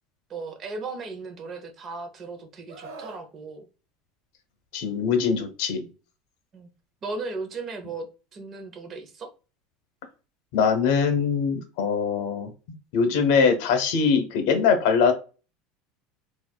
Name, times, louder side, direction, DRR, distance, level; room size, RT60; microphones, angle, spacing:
voice 1, 0.3-3.7 6.5-6.7 7.0-8.1 8.3-9.3, right 3 dB, 30° right, 6 dB, 0.7 m, -36 dB
Screaming, 2.7-3.3 4.7-5.0, right 4 dB, 85° right, 1.0 m, -42 dB
voice 2, 4.7-5.9 10.5-12.5 12.9-15.1, left 6 dB, 70° left, 7 dB, 0.9 m, -22 dB
4.1 x 2.4 x 2.2 m, 0.33 s
supercardioid pair, 145°, 0 cm